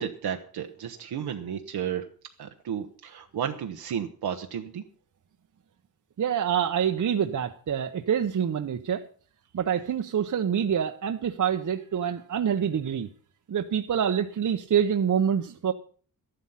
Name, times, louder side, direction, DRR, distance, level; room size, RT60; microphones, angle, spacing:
voice 1, 0.0-2.0 2.4-4.8, right 8 dB, 90° right, 4 dB, 1.1 m, -33 dB
voice 2, 6.2-9.0 9.5-13.1 13.5-15.7, right 8 dB, 55° right, 6 dB, 0.9 m, -26 dB
13.0 x 11.5 x 5.7 m, 0.42 s
wide cardioid pair, 110°, 37 cm